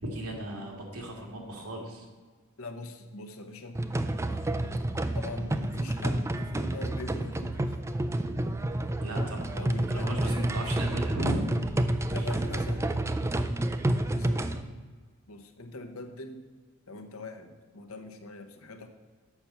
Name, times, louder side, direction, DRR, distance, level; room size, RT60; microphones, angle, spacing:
voice 1, 0.0-2.1 8.9-11.4 12.2-12.3, right 1 dB, 80° right, 0 dB, 1.9 m, -36 dB
voice 2, 2.6-3.8 5.1-7.8 9.5-10.5 12.1-12.9 14.1-14.6 15.3-16.4 16.9-18.9, left 2 dB, 70° left, 6 dB, 0.9 m, -42 dB
sound 1, 3.7-14.6, right 1 dB, 15° right, 0.3 m, -29 dB
6.9 x 5.8 x 6.8 m, 1.4 s
head